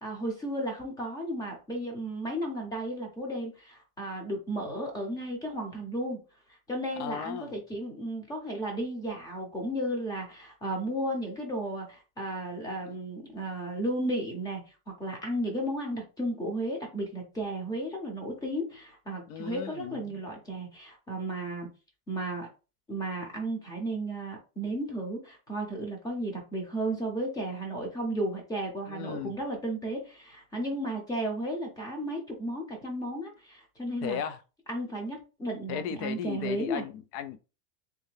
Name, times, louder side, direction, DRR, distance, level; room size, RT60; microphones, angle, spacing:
voice 1, 0.0-6.2 6.5-21.7 22.1-22.5 22.9-34.2 34.7-36.9, right 1 dB, 10° left, 0.5 m, -34 dB
voice 2, 7.0-7.6 19.3-20.2 28.9-29.4 34.0-34.4 35.7-37.4, left 8 dB, 70° left, 0.6 m, -36 dB
3.4 x 2.7 x 3.2 m
cardioid pair, 170°, 47 cm